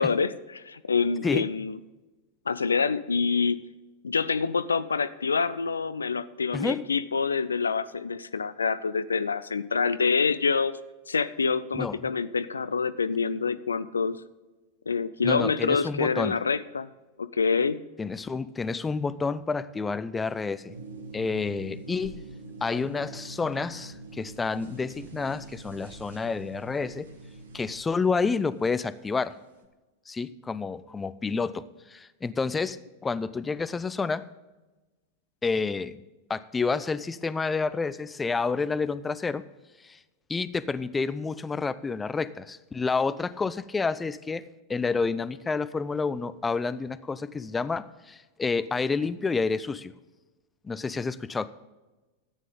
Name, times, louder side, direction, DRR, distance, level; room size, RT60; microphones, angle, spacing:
voice 1, 0.0-1.8 2.5-3.6 4.0-10.7 11.1-14.2 14.9-16.9 17.2-17.8, left 5 dB, 75° left, 15 dB, 0.4 m, -26 dB
voice 2, 6.5-6.9 11.7-12.0 15.2-16.4 18.0-20.8 21.1-22.2 22.6-27.1 27.5-29.3 30.1-32.8 33.0-34.2 35.4-36.0 36.3-39.4 39.8-40.0 40.3-44.4 44.7-49.9 50.6-51.5, left 4 dB, 15° left, 16 dB, 0.5 m, -29 dB
sound 1, 20.7-27.8, right 2 dB, 65° right, 1.6 m, -44 dB
14.0 x 9.2 x 3.8 m, 1.1 s
figure-of-eight pair, 90°, 0 cm